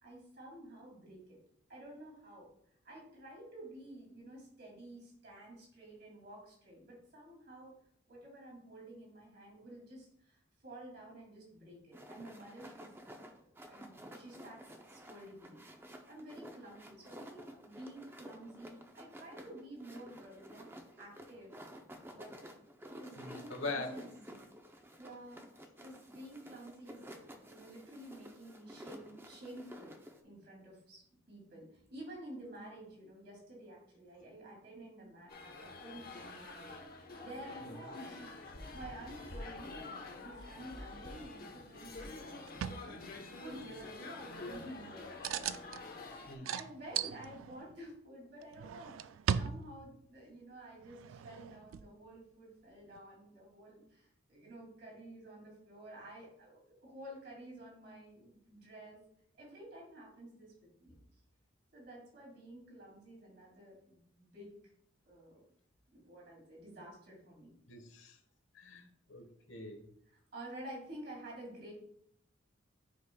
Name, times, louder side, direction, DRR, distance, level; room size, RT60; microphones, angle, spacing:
voice 1, 0.0-1.4 1.7-2.5 2.8-7.7 8.1-12.9 13.6-15.6 16.1-20.7 21.0-21.6 22.1-22.3 22.9-24.4 25.0-25.4 25.8-43.0 43.3-45.9 46.4-59.0 59.4-61.0 61.7-64.5 65.1-65.4 65.9-67.5 70.1-71.7, right 1 dB, 55° right, -2 dB, 2.6 m, -51 dB
sound 1, 11.9-30.2, equal, 10° right, 0.6 m, -52 dB
voice 2, 23.2-24.0 46.3-46.5 67.7-68.2 68.5-69.8, left 3 dB, 75° left, 5 dB, 1.2 m, -43 dB
sound 2, 35.3-46.4, left 2 dB, 50° left, 1.0 m, -47 dB
sound 3, 42.5-42.9 45.2-45.8 46.4-47.8 48.4-50.0 50.8-51.9 52.9-53.0, right 8 dB, 85° right, 0.3 m, -38 dB
9.4 x 5.0 x 2.3 m, 0.70 s
head